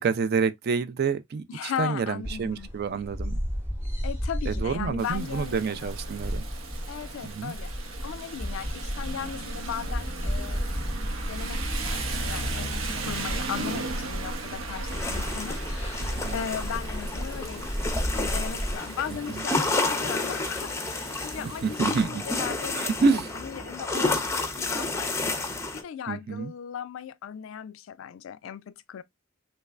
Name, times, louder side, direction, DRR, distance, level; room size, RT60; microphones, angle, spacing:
voice 1, 0.0-3.4 4.5-6.4 7.2-7.5 13.4-13.5 16.0-16.4 21.6-22.2 22.7-23.3 26.1-26.5, right 5 dB, 50° right, 0.4 m, -28 dB
voice 2, 1.5-2.7 4.0-5.9 6.9-10.7 11.3-17.7 18.1-23.1 23.3-25.3 25.7-29.0, left 8 dB, 75° left, 0.3 m, -37 dB
sound 1, 2.2-18.8, equal, 10° right, 0.8 m, -33 dB
Rain, 5.0-22.0, right 3 dB, 90° right, 0.8 m, -38 dB
sound 2, 14.9-25.8, left 3 dB, 15° left, 0.5 m, -31 dB
3.2 x 3.1 x 2.3 m
head